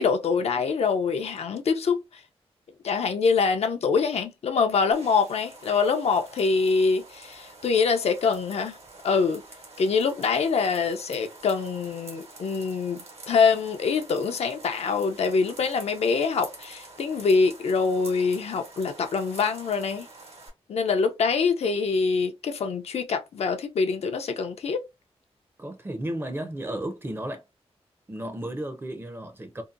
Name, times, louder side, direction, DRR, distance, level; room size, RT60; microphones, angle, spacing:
voice 1, 0.0-2.0 2.8-8.8 9.0-9.4 9.8-20.1 20.7-24.8, left 5 dB, 75° left, 0.4 m, -24 dB
sound 1, 4.9-20.5, right 3 dB, 75° right, 1.1 m, -47 dB
voice 2, 25.6-27.4 28.1-29.6, right 1 dB, 20° right, 0.5 m, -33 dB
2.7 x 2.1 x 2.4 m
wide cardioid pair, 120°, 11 cm